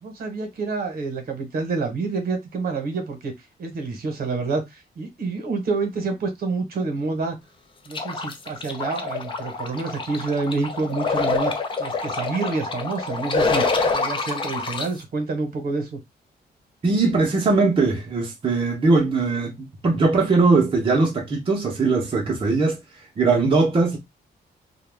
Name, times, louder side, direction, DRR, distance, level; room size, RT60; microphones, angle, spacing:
voice 1, 0.0-3.3 3.6-7.4 7.9-13.7 13.9-16.0, right 3 dB, 60° right, 0.9 m, -28 dB
sound 1, 7.9-14.9, left 4 dB, 30° left, 0.4 m, -26 dB
voice 2, 16.8-24.0, right 3 dB, 30° right, 0.6 m, -20 dB
2.2 x 2.1 x 3.2 m
wide cardioid pair, 170°, 17 cm